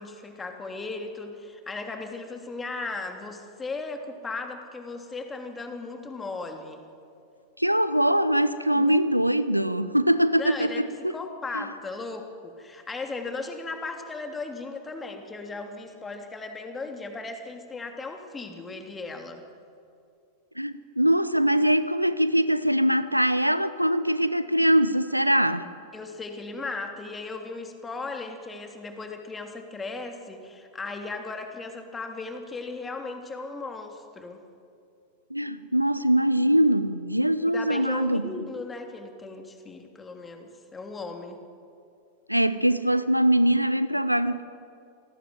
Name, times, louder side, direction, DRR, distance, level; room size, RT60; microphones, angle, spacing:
voice 1, 0.0-6.8 8.7-9.0 10.4-10.8 11.1-19.5 25.9-34.4 37.5-41.4, left 3 dB, 15° left, 5 dB, 3.1 m, -37 dB
voice 2, 7.6-11.2 11.5-11.6 20.6-25.7 35.3-38.3 42.3-44.4, right 1 dB, 90° right, 14 dB, 1.0 m, -22 dB
27.5 x 19.0 x 9.4 m, 2.4 s
figure-of-eight pair, 90°, 0 cm